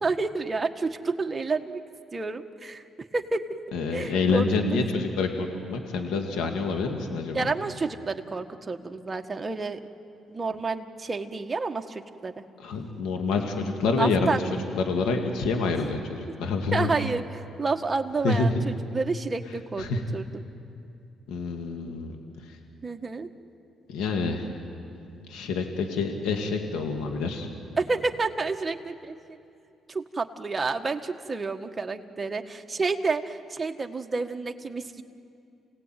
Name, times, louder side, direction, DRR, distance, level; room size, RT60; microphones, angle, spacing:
voice 1, 0.0-1.8 2.1-2.8 3.1-3.5 3.9-4.8 7.3-9.8 10.3-12.3 13.9-14.4 15.7-15.9 16.7-20.3 22.8-23.3 27.8-29.4 29.9-35.0, right 3 dB, 25° right, 5 dB, 1.5 m, -29 dB
voice 2, 3.7-7.5 12.6-14.4 14.8-16.9 18.2-18.5 19.8-20.0 21.3-22.2 23.9-24.5 25.3-27.5, left 4 dB, 90° left, 3 dB, 2.1 m, -27 dB
28.5 x 18.0 x 9.2 m, 2.6 s
cardioid pair, 90°, 0 cm